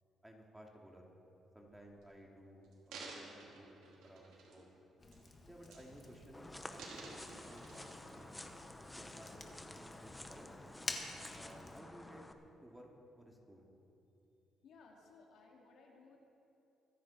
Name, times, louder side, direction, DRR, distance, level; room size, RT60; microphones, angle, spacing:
voice 1, 0.2-1.1 1.5-4.8 5.4-8.5 9.0-10.5 11.3-12.2 12.6-12.9 13.1-13.7, equal, 5° right, 0 dB, 2.3 m, -57 dB
sound 1, 1.7-2.0 2.6-4.7 5.1-5.3 5.6-6.2 6.5-8.2 8.8-8.9, right 3 dB, 85° right, 3.1 m, -53 dB
Fire, 5.0-11.8, left 3 dB, 35° left, 1.7 m, -50 dB
sound 2, 6.3-12.3, left 1 dB, 10° left, 1.0 m, -51 dB
voice 2, 14.6-16.2, left 4 dB, 75° left, -1 dB, 2.6 m, -60 dB
24.5 x 9.5 x 4.2 m, 2.9 s
cardioid pair, 90°, 0 cm